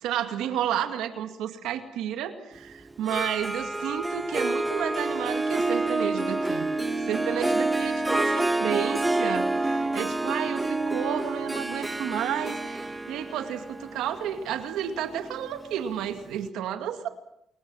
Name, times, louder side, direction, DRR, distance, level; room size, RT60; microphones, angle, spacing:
voice 1, 0.0-6.7 7.0-17.1, right 10 dB, 90° right, 7 dB, 2.1 m, -31 dB
Harp, 2.9-15.8, right 2 dB, 15° right, 1.3 m, -28 dB
26.5 x 21.5 x 6.3 m, 0.78 s
cardioid pair, 85°, 0 cm